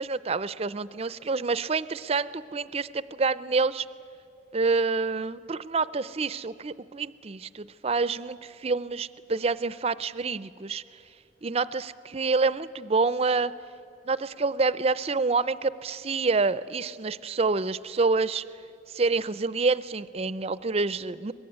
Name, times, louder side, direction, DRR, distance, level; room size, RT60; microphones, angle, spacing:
voice 1, 0.0-3.9 4.5-10.8 11.4-13.5 14.0-18.4 18.9-21.3, right 4 dB, 35° right, 17 dB, 0.5 m, -27 dB
23.0 x 20.5 x 9.5 m, 2.7 s
head